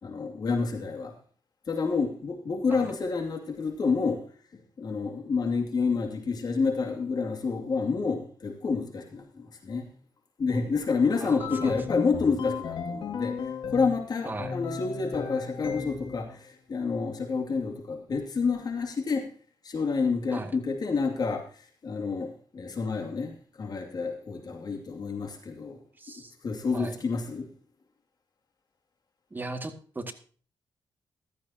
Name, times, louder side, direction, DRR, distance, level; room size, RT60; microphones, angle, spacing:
voice 1, 0.0-1.1 1.7-4.2 4.5-9.9 10.4-19.3 19.6-21.4 21.8-25.8 26.4-27.5, left 4 dB, 55° left, 3 dB, 2.5 m, -29 dB
voice 2, 11.2-11.8 14.2-14.6 20.3-20.6 26.0-26.3 26.7-27.0 29.3-30.1, right 2 dB, 25° right, 5 dB, 2.2 m, -37 dB
sound 1, 11.4-14.0 14.4-16.3, left 5 dB, 80° left, 2.1 m, -35 dB
14.5 x 13.5 x 2.9 m, 0.41 s
cardioid pair, 90°, 8 cm